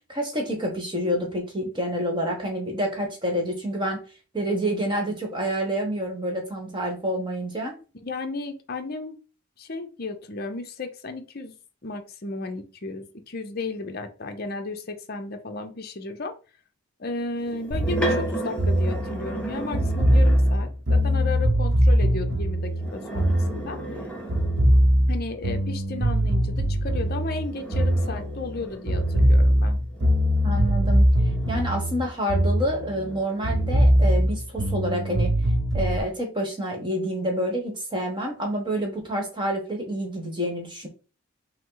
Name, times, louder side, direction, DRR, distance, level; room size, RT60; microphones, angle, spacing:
voice 1, 0.1-4.0 4.3-7.8 30.4-31.1 31.5-35.3 35.7-40.9, equal, 20° right, 2 dB, 1.1 m, -28 dB
voice 2, 8.0-9.2 9.6-11.6 11.8-16.4 17.0-23.8 25.1-29.8, left 3 dB, 45° left, 5 dB, 0.6 m, -34 dB
sound 1, 17.4-20.7 22.7-25.0 27.0-32.2 32.7-34.5, right 2 dB, 5° left, 0.6 m, -36 dB
sound 2, 17.7-24.0 24.3-28.6 28.9-33.2 33.4-36.0, equal, 55° right, 0.7 m, -22 dB
5.4 x 2.0 x 3.8 m, 0.35 s
head